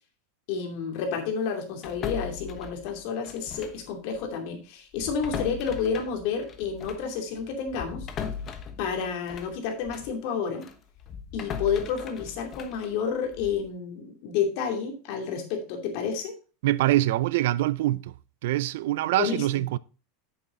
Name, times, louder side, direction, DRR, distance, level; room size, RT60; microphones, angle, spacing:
voice 1, 0.5-8.1 8.8-10.6 11.3-16.3 19.2-19.4, left 6 dB, 55° left, 2.5 m, -30 dB
sound 1, 1.8-3.9 4.1-4.3 4.9-10.2 10.6-13.7, left 6 dB, 30° left, 1.1 m, -39 dB
voice 2, 16.6-18.1 18.4-19.8, right 15 dB, 70° right, 0.4 m, -24 dB
8.8 x 6.8 x 3.7 m
supercardioid pair, 150°, 0 cm